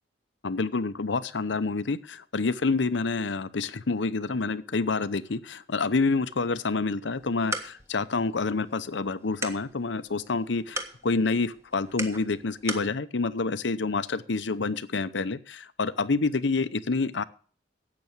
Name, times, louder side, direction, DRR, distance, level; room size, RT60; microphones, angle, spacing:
voice 1, 0.4-17.2, left 3 dB, 90° left, 14 dB, 0.8 m, -28 dB
sound 1, 7.1-12.9, right 2 dB, 15° right, 1.4 m, -39 dB
12.0 x 8.4 x 6.1 m, 0.42 s
head